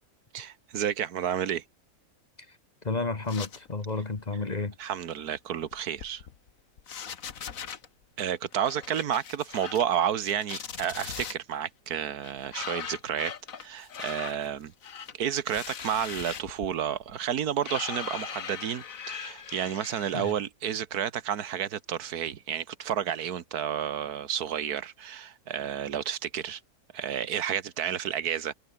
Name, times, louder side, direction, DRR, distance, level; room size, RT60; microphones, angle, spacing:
voice 1, 0.3-1.6 4.8-6.2 8.2-13.3 13.6-14.7 15.2-26.6 26.9-28.5, right 9 dB, 85° right, 1.6 m, -31 dB
voice 2, 2.8-4.7 20.1-20.3, left 3 dB, 30° left, 1.5 m, -31 dB
sound 1, 3.3-3.9 4.2-4.4 5.6-6.5 6.8-7.9 8.5-9.9 10.2-11.3 12.2-20.3, left 7 dB, 65° left, 1.7 m, -40 dB
omnidirectional pair, 1.6 m